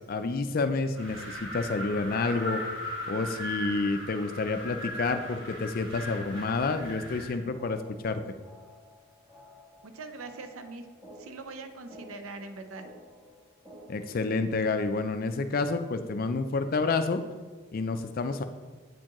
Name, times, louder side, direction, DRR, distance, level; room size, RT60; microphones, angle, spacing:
voice 1, 0.1-2.6 3.1-7.8 8.0-8.2 13.9-17.2 17.7-18.4, left 3 dB, 40° left, 9 dB, 0.3 m, -29 dB
Wind, 0.9-7.4, equal, 60° right, 1.4 m, -38 dB
sound 1, 7.1-14.1, equal, 15° right, 1.6 m, -53 dB
voice 2, 9.8-10.9 11.2-12.9, right 3 dB, 75° right, 7 dB, 0.6 m, -42 dB
8.3 x 4.5 x 3.0 m, 1.4 s
head